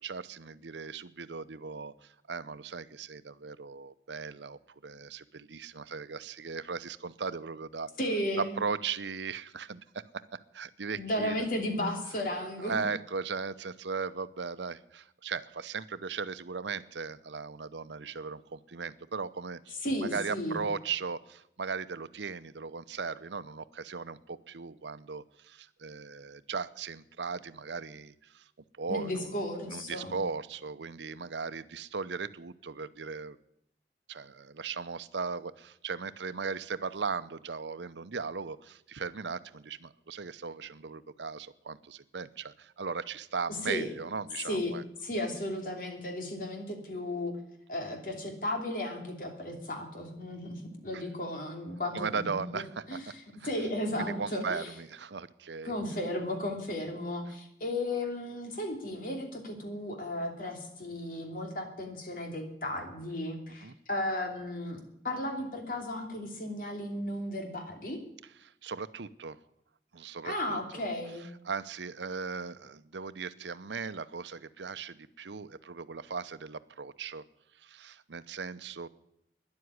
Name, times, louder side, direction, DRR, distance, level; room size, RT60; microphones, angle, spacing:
voice 1, 0.0-7.9 8.4-11.4 12.6-19.8 20.0-28.5 28.8-29.3 29.6-33.4 34.1-44.8 50.9-51.0 51.9-53.1 53.4-53.5 54.0-55.7 63.6-63.7 68.4-69.4 69.9-70.6 71.4-77.2 77.6-78.9, right 5 dB, 90° right, 14 dB, 0.7 m, -38 dB
voice 2, 8.0-8.6 10.9-12.8 19.8-20.6 28.9-30.1 43.6-43.9 44.5-44.8 45.0-47.4 47.7-53.0 53.4-54.7 55.6-64.8 65.0-68.0 70.2-71.3, left 1 dB, 50° left, 3 dB, 3.0 m, -34 dB
13.0 x 10.5 x 9.7 m, 0.78 s
head